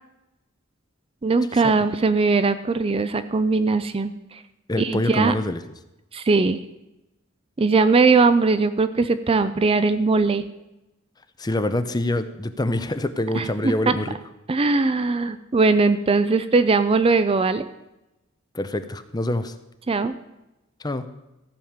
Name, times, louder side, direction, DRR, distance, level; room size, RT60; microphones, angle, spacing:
voice 1, 1.2-4.4 4.8-5.3 6.1-6.6 7.6-10.4 13.3-13.9 14.5-17.7 19.9-20.1, right 4 dB, 25° right, 12 dB, 0.4 m, -20 dB
voice 2, 4.7-5.6 11.4-14.2 18.5-19.5 20.8-21.0, left 1 dB, 20° left, 10 dB, 0.6 m, -25 dB
14.5 x 5.2 x 7.2 m, 0.95 s
head